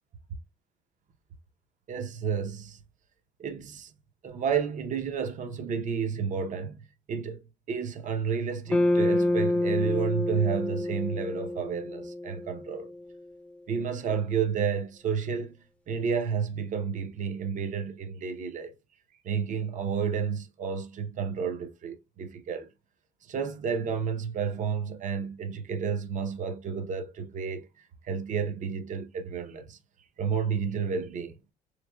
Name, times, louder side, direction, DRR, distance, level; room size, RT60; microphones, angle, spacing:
voice 1, 1.9-2.8 3.4-3.9 4.2-12.9 13.7-15.5 15.9-18.7 19.2-22.7 23.3-27.7 28.0-29.8 30.2-31.5, right 6 dB, 50° right, 0.7 m, -31 dB
sound 1, 8.7-13.0, left 1 dB, 5° left, 0.5 m, -27 dB
3.9 x 3.3 x 2.2 m
cardioid pair, 110°, 17 cm